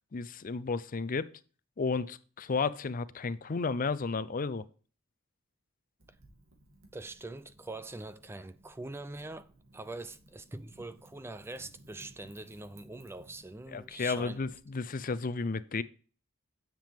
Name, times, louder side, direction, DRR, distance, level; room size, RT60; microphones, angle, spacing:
voice 1, 0.1-1.3 1.8-4.6 13.7-15.8, left 4 dB, 40° left, 0.5 m, -33 dB
Wind / Fire, 6.0-14.6, right 1 dB, 80° right, 2.5 m, -59 dB
voice 2, 6.9-14.4, right 2 dB, 10° right, 0.4 m, -43 dB
10.0 x 7.6 x 3.5 m
head